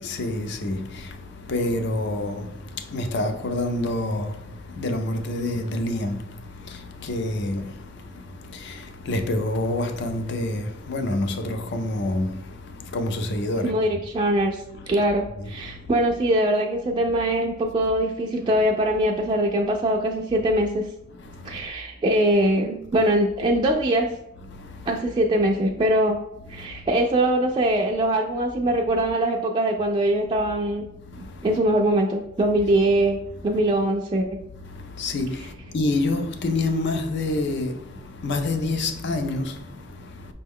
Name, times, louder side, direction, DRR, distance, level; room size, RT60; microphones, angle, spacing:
voice 1, 0.0-14.0 14.9-15.0 15.4-15.9 21.2-21.6 24.5-24.9 26.5-26.9 31.0-31.6 33.4-33.6 34.6-40.3, left 2 dB, 60° left, 0.5 m, -28 dB
voice 2, 13.6-20.8 21.4-24.1 24.9-26.2 26.5-30.9 31.4-34.4, right 1 dB, 25° right, 0.3 m, -22 dB
5.2 x 2.2 x 3.5 m
head